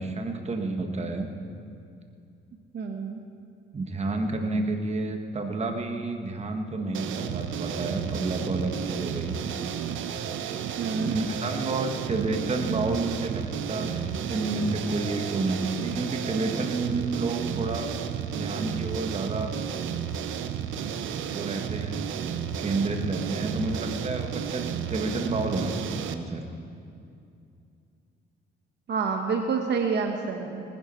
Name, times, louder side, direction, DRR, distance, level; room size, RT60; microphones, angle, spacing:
voice 1, 0.0-1.3 3.7-9.4 11.0-17.9 18.3-19.5 21.3-22.1 22.6-26.4, right 2 dB, 35° right, 4 dB, 1.4 m, -30 dB
voice 2, 2.7-3.2 10.8-11.1 28.9-30.6, right 5 dB, 60° right, 3 dB, 1.1 m, -28 dB
sound 1, 6.9-26.1, right 8 dB, 80° right, 0.7 m, -32 dB
19.5 x 10.5 x 4.4 m, 2.5 s
cardioid pair, 90°, 20 cm